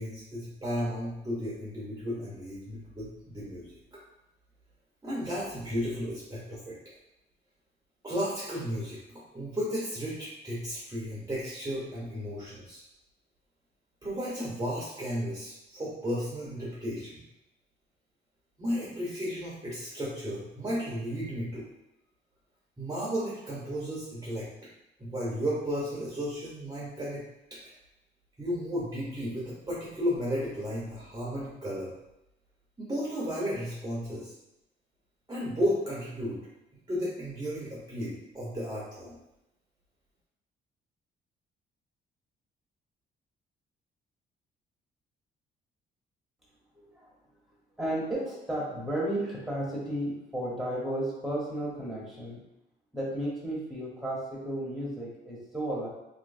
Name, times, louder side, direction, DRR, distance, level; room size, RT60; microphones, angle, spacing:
voice 1, 0.0-4.0 5.0-6.8 8.0-12.8 14.0-17.2 18.6-21.7 22.8-24.5 25.0-27.2 27.5-27.7 28.4-31.9 32.8-34.3 35.3-36.4 36.9-39.2, equal, 20° right, -6 dB, 0.8 m, -34 dB
voice 2, 47.8-52.4 52.9-55.9, right 1 dB, ahead, -5 dB, 1.1 m, -33 dB
3.0 x 3.0 x 2.6 m, 0.90 s
cardioid pair, 90°, 20 cm